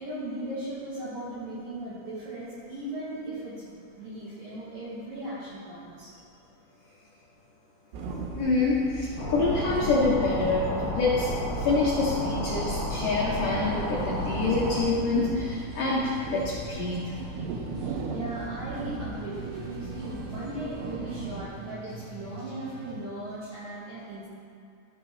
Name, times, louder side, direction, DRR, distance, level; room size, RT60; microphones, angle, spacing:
voice 1, 0.0-6.1 17.8-24.3, right 1 dB, 60° right, -10 dB, 2.9 m, -38 dB
sound 1, 7.9-21.5, right 3 dB, 85° right, 2.8 m, -37 dB
voice 2, 8.3-11.3 11.6-17.1, left 3 dB, 75° left, -5 dB, 1.9 m, -26 dB
sound 2, 9.2-14.8, equal, 50° left, 3.2 m, -32 dB
sound 3, 13.1-23.0, right 2 dB, 45° right, 2.1 m, -44 dB
14.5 x 5.0 x 3.3 m, 2.5 s
omnidirectional pair, 5.1 m